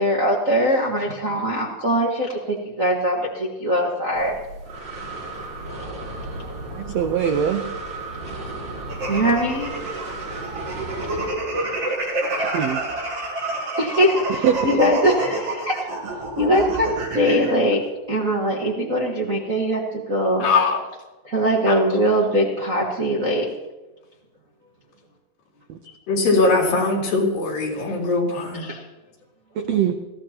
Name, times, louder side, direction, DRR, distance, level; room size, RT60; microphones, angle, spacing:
voice 1, 0.0-4.3 9.1-9.7 13.8-15.8 16.4-20.5 21.2-23.4 28.5-28.8, equal, 50° right, -3 dB, 0.9 m, -21 dB
Breathing, 4.2-11.3, right 2 dB, 35° right, 2.6 m, -34 dB
voice 2, 6.7-7.7 9.1-9.2 12.5-12.8 14.4-14.6 25.7-25.8 29.5-29.9, right 9 dB, 85° right, 6 dB, 1.4 m, -22 dB
sound 1, 8.9-17.5, right 2 dB, 70° right, 6.8 m, -28 dB
voice 3, 20.4-20.8 21.7-21.8 26.1-28.7, left 3 dB, 80° left, -1 dB, 4.5 m, -21 dB
20.5 x 15.5 x 2.9 m, 1.1 s
omnidirectional pair, 4.0 m